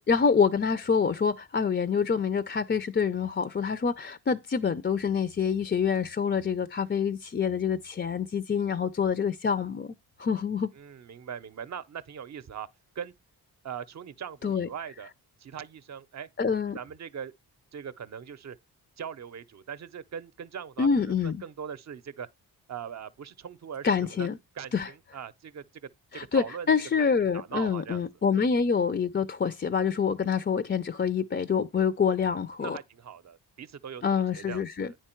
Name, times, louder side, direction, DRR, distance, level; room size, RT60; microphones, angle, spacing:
voice 1, 0.1-10.7 14.4-14.7 16.4-16.8 20.8-21.4 23.8-24.4 24.7-24.9 26.1-32.8 34.0-34.9, left 6 dB, 30° left, 0.5 m, -26 dB
voice 2, 10.7-12.7 13.0-13.1 13.6-15.1 15.4-16.3 16.7-17.3 17.7-18.6 19.0-22.3 22.7-24.3 24.5-25.6 26.1-26.7 27.0-27.1 27.3-28.0 28.3-28.4 32.6-35.0, right 8 dB, 45° right, 0.6 m, -40 dB
9.7 x 4.6 x 4.4 m
wide cardioid pair, 120°, 38 cm